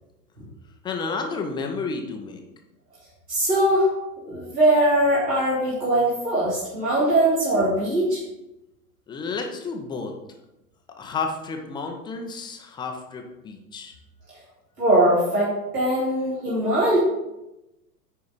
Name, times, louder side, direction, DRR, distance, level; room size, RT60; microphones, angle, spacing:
voice 1, 0.8-2.4 9.1-10.1 11.0-13.9, left 4 dB, 10° left, 3 dB, 0.6 m, -31 dB
voice 2, 3.3-3.9 4.2-8.2 14.8-17.0, right 1 dB, 75° right, -9 dB, 3.0 m, -21 dB
9.8 x 4.7 x 4.1 m, 0.93 s
figure-of-eight pair, 100°, 48 cm